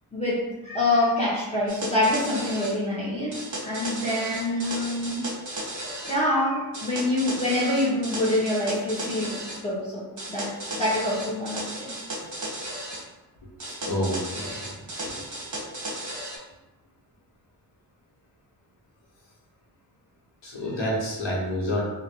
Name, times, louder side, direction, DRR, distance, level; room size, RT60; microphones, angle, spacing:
voice 1, 0.1-5.2 6.0-9.4 9.6-11.9, left 1 dB, 15° left, -10 dB, 1.2 m, -26 dB
sound 1, 1.7-2.8 3.3-6.2 6.7-9.6 10.2-13.0 13.6-16.4, right 1 dB, 35° right, 1.2 m, -35 dB
voice 2, 13.7-14.7 15.0-15.2 20.4-21.8, left 1 dB, 60° left, -5 dB, 1.4 m, -29 dB
3.0 x 2.6 x 2.9 m, 1.0 s
supercardioid pair, 45°, 48 cm